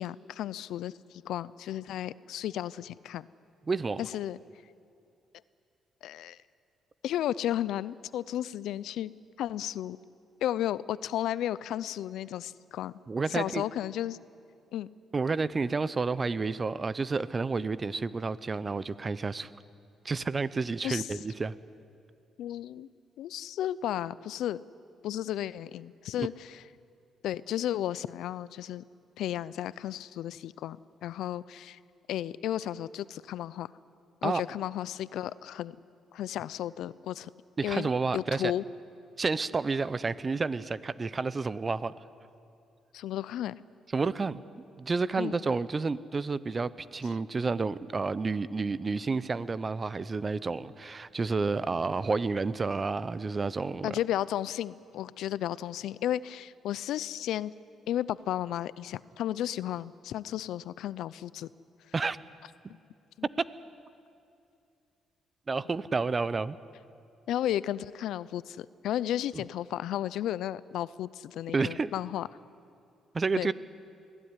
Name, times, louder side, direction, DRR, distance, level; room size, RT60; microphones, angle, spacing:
voice 1, 0.0-3.3 4.0-4.4 6.0-6.4 7.0-9.1 9.4-10.0 10.4-13.0 13.3-14.2 14.7-14.9 20.8-21.1 22.4-22.9 23.2-24.6 25.0-26.6 27.2-28.8 29.2-31.8 32.1-33.7 34.2-35.8 36.1-37.3 37.6-38.6 42.9-43.5 45.2-45.4 53.8-57.5 57.9-61.5 63.2-63.3 67.3-72.3 73.4-73.5, left 12 dB, 80° left, 18 dB, 0.5 m, -33 dB
voice 2, 3.7-4.0 13.1-13.6 15.1-19.5 20.0-21.5 26.2-26.3 34.2-34.4 37.6-38.5 39.2-41.9 43.9-44.4 44.8-54.0 61.9-62.2 65.5-66.6 71.5-71.9 73.1-73.5, right 4 dB, 30° right, 17 dB, 0.7 m, -30 dB
22.5 x 16.0 x 9.8 m, 2.5 s
cardioid pair, 90°, 0 cm